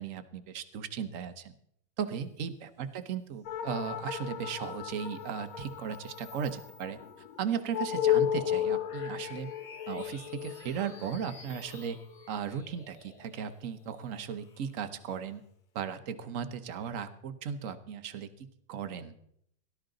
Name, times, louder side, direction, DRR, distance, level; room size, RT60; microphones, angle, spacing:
voice 1, 0.0-1.5 2.0-7.0 7.4-9.5 9.9-12.0 12.3-15.4 15.7-19.1, right 7 dB, 50° right, 11 dB, 1.0 m, -36 dB
sound 1, 3.5-12.3, left 11 dB, 80° left, 1.7 m, -34 dB
sound 2, 4.4-15.4, left 4 dB, 60° left, 2.2 m, -53 dB
17.5 x 12.5 x 3.9 m, 0.69 s
omnidirectional pair, 2.3 m